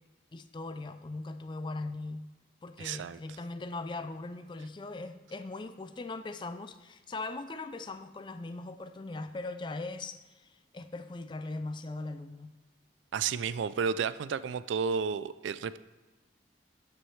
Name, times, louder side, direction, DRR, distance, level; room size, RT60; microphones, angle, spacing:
voice 1, 0.3-2.3 2.6-12.6, left 2 dB, 25° left, 10 dB, 0.3 m, -40 dB
voice 2, 2.8-3.2 13.1-15.8, right 6 dB, 80° right, 15 dB, 0.3 m, -32 dB
12.5 x 6.1 x 3.2 m, 1.2 s
head